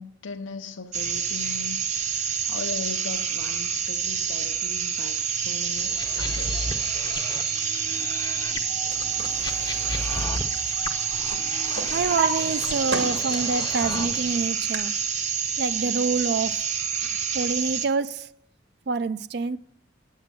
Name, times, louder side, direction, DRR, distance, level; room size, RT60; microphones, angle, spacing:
voice 1, 0.0-6.8, left 4 dB, 75° left, 0.6 m, -38 dB
sound 1, 0.9-17.9, right 7 dB, 35° right, 0.8 m, -28 dB
sound 2, 5.7-14.5, left 3 dB, 20° left, 0.6 m, -35 dB
Drawer open or close, 8.6-11.0 11.3-13.7 14.1-14.8, right 4 dB, 80° right, 2.1 m, -33 dB
voice 2, 11.9-14.9 15.6-16.6 17.3-18.3 18.9-19.6, right 4 dB, 55° right, 0.4 m, -26 dB
9.2 x 7.4 x 7.5 m
head